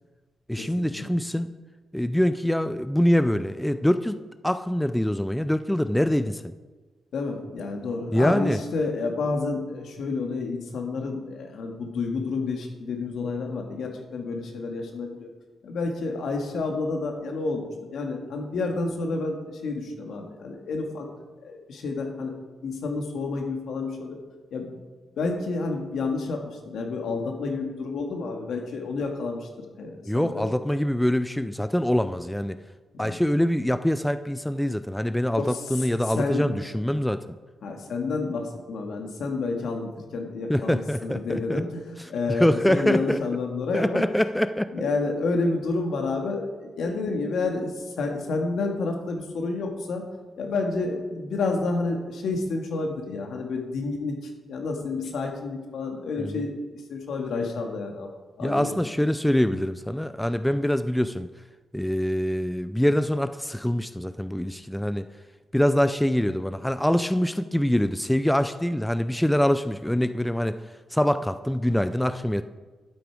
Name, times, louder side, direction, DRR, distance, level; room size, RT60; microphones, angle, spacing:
voice 1, 0.5-1.5 1.9-4.2 4.4-6.5 8.1-8.6 30.1-32.6 33.0-37.2 40.5-41.6 42.3-43.2 43.7-44.9 47.1-47.2 56.2-56.5 58.4-61.3 61.7-65.1 65.5-70.6 70.9-72.4, equal, 5° left, 11 dB, 0.3 m, -24 dB
voice 2, 7.1-15.3 15.6-17.7 17.9-19.4 19.6-21.1 21.4-22.3 22.6-24.2 24.5-24.7 25.2-29.5 29.8-30.5 32.9-33.2 35.3-35.6 36.1-36.5 37.6-44.0 44.7-50.0 50.4-56.5 56.9-58.1 58.4-58.7, left 3 dB, 75° left, 3 dB, 1.8 m, -29 dB
11.5 x 8.4 x 4.7 m, 1.3 s
wide cardioid pair, 135°, 0 cm